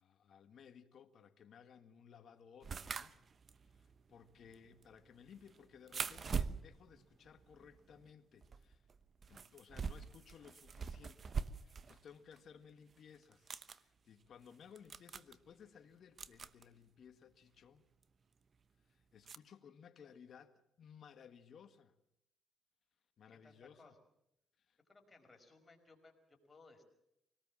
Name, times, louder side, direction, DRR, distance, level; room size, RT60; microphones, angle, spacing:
voice 1, 0.0-3.1 3.7-8.9 9.3-17.8 18.9-22.0 23.2-23.9 24.7-24.8, left 7 dB, 60° left, 1.7 m, -59 dB
sound 1, 2.6-8.1 8.4-12.0 12.3-12.4 13.2-13.8 14.5-14.6 14.8-15.3 16.2-16.6 18.0-18.1 19.3-19.4, right 5 dB, 45° right, 1.0 m, -44 dB
voice 2, 23.4-24.0 24.9-26.8, left 3 dB, 25° left, 5.2 m, -62 dB
24.5 x 19.0 x 7.5 m
cardioid pair, 90°, 0 cm